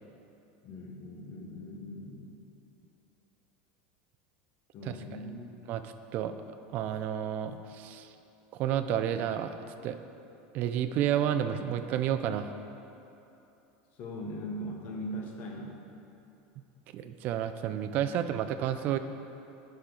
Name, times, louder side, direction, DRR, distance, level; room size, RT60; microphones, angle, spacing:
voice 1, 0.6-2.3 4.7-5.5 13.9-15.8, equal, 40° left, 1 dB, 0.9 m, -40 dB
voice 2, 5.7-6.3 6.7-8.1 8.5-9.5 9.8-10.0 10.5-12.5 16.9-19.0, right 10 dB, 40° right, 9 dB, 0.3 m, -30 dB
11.5 x 4.3 x 3.9 m, 2.8 s
supercardioid pair, 165°, 5 cm